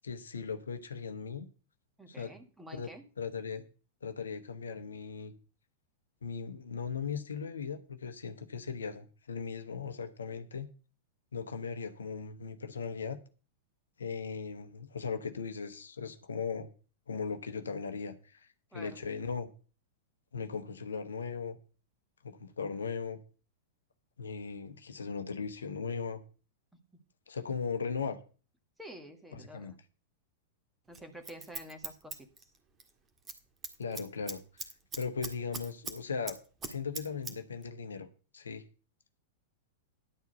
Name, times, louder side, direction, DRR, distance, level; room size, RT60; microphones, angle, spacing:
voice 1, 0.0-1.5 2.2-2.3 2.7-2.9 3.2-3.6 4.0-5.3 6.2-10.7 11.3-13.2 14.0-16.7 17.1-19.5 20.3-21.6 22.2-23.2 24.2-26.2 27.3-28.2 29.3-29.7 33.8-34.4 35.0-36.4 36.7-38.1 38.3-38.6, left 5 dB, 70° left, 9 dB, 0.9 m, -38 dB
voice 2, 2.0-3.0 18.7-19.0 26.7-26.8 28.8-29.8 30.9-32.5, equal, 5° right, 5 dB, 1.8 m, -49 dB
Scissors, 30.9-32.9 33.2-33.4 33.6-36.0 36.3-37.3 37.6-37.7, right 4 dB, 20° right, 1.7 m, -41 dB
11.0 x 4.7 x 7.9 m, 0.36 s
figure-of-eight pair, 95°, 0 cm